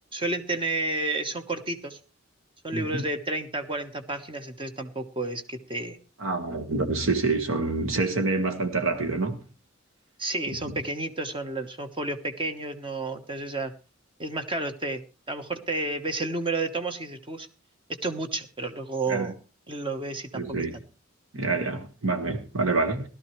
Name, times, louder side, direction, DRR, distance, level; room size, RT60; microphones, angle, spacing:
voice 1, 0.1-2.0 2.6-6.0 10.2-13.7 14.2-17.5 18.0-19.3 19.7-20.4, right 2 dB, 25° right, 1.1 m, -31 dB
voice 2, 2.7-3.0 6.2-9.4 19.1-19.3 20.3-20.8 21.3-23.1, right 3 dB, 75° right, 1.7 m, -27 dB
17.0 x 12.5 x 3.2 m
head